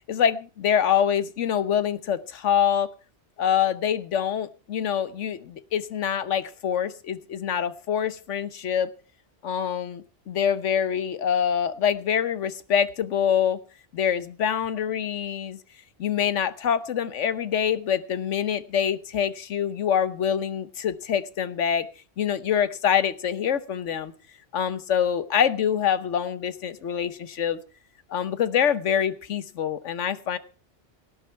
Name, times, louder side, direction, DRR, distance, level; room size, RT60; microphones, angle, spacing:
voice 1, 0.1-2.9 3.4-8.9 9.4-13.6 13.9-15.6 16.0-21.9 22.2-24.1 24.5-27.6 28.1-30.4, left 8 dB, 85° left, 14 dB, 1.3 m, -25 dB
18.0 x 11.0 x 4.5 m, 0.35 s
omnidirectional pair, 1.2 m